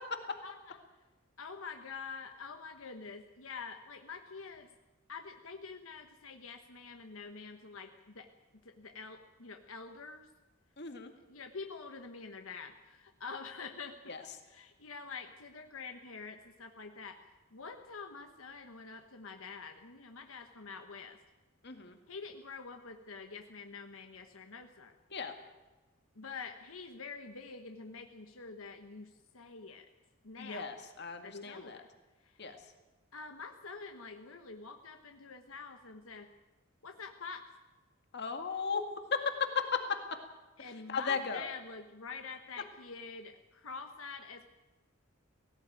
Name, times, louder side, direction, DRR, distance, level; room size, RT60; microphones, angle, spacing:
voice 1, 0.4-0.8 1.4-4.7 5.1-8.3 8.6-10.3 11.3-21.2 22.1-24.9 26.1-29.9 30.2-30.8 31.2-31.9 32.2-32.4 33.1-36.3 36.8-37.4 40.6-44.5, left 4 dB, 85° left, 5 dB, 1.3 m, -46 dB
voice 2, 10.8-11.1 14.1-14.2 21.6-22.0 25.1-25.3 30.4-31.8 32.4-32.5 38.1-38.8 39.1-39.2 39.7-39.8 40.6-41.5, left 5 dB, 55° left, 5 dB, 2.1 m, -36 dB
17.0 x 17.0 x 9.0 m, 1.2 s
head